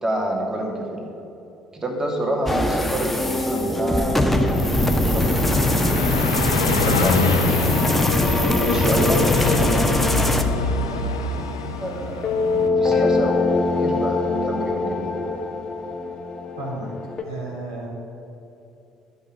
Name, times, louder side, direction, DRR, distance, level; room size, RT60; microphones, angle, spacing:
voice 1, 0.0-1.1 1.7-5.9 6.8-7.9 8.5-11.0 11.8-15.3, right 1 dB, 25° right, 0 dB, 2.6 m, -28 dB
sound 1, 2.5-10.4, left 1 dB, 5° left, 1.3 m, -22 dB
sound 2, 3.1-17.2, left 3 dB, 40° left, 1.4 m, -26 dB
Car passing by, 4.2-12.7, left 4 dB, 85° left, 0.7 m, -26 dB
voice 2, 16.6-16.9 17.2-17.9, right 2 dB, 85° right, -6 dB, 3.1 m, -32 dB
12.0 x 6.5 x 9.1 m, 2.9 s
figure-of-eight pair, 55°, 2 cm